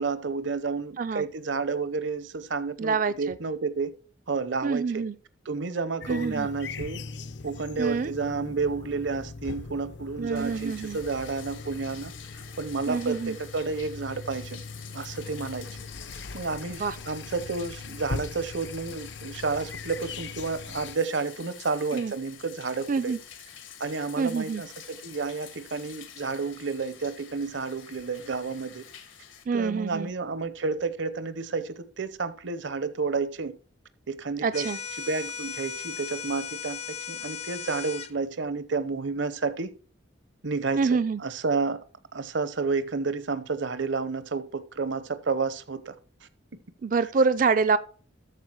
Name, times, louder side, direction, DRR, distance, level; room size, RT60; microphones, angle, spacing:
voice 1, 0.0-3.9 4.3-5.1 5.4-7.0 7.4-14.6 14.9-15.9 16.3-23.1 23.8-28.8 29.5-33.5 34.1-34.7 35.0-39.7 40.4-41.8 42.1-46.0, right 4 dB, 70° right, 0.8 m, -31 dB
voice 2, 2.8-3.1 4.6-5.1 6.1-6.5 7.8-8.1 10.2-11.0 12.9-13.3 16.8-17.0 21.9-22.1 22.9-23.2 24.2-24.6 29.5-30.1 34.4-34.8 40.8-41.2 46.8-47.8, right 5 dB, 40° right, 0.3 m, -26 dB
sound 1, 6.0-21.0, left 3 dB, 65° left, 0.6 m, -40 dB
Bathtub (filling or washing), 10.4-29.4, left 8 dB, 80° left, 1.7 m, -47 dB
sound 2, 34.5-38.1, left 7 dB, 30° left, 0.3 m, -37 dB
13.5 x 4.7 x 4.5 m
head